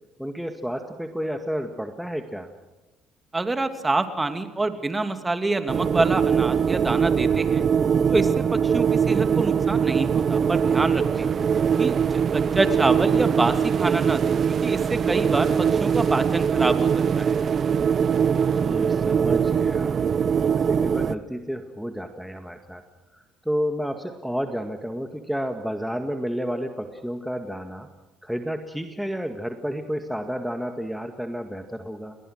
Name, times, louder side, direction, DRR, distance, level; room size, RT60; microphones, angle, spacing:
voice 1, 0.2-2.5 11.2-11.3 18.5-20.0 20.5-22.8 23.1-27.9 28.2-32.2, equal, ahead, 6 dB, 2.0 m, -31 dB
voice 2, 3.3-7.7 8.1-11.3 11.8-11.9 12.3-14.4 14.6-16.9 17.1-17.3, right 2 dB, 20° right, 8 dB, 2.7 m, -26 dB
sound 1, 5.7-21.1, right 7 dB, 45° right, 0.9 m, -22 dB
29.5 x 22.5 x 6.5 m, 1.1 s
hypercardioid pair, 60°, 0 cm